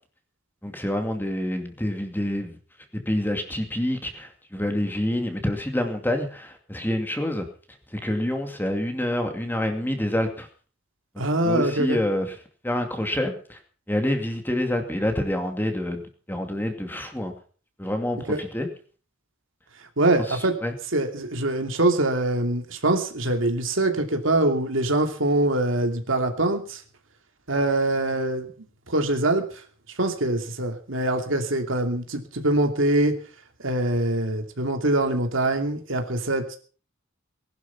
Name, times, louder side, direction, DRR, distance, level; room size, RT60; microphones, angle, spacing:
voice 1, 0.6-2.6 2.9-7.5 7.9-10.5 11.1-12.3 12.6-13.6 13.9-17.3 17.8-18.7 20.3-20.7, left 1 dB, 10° left, 5 dB, 2.4 m, -27 dB
voice 2, 11.2-12.0 18.3-18.4 20.0-20.5 20.9-26.8 27.5-29.4 30.0-33.2 33.6-36.6, right 2 dB, 70° right, 5 dB, 2.7 m, -24 dB
19.5 x 11.5 x 5.8 m, 0.42 s
head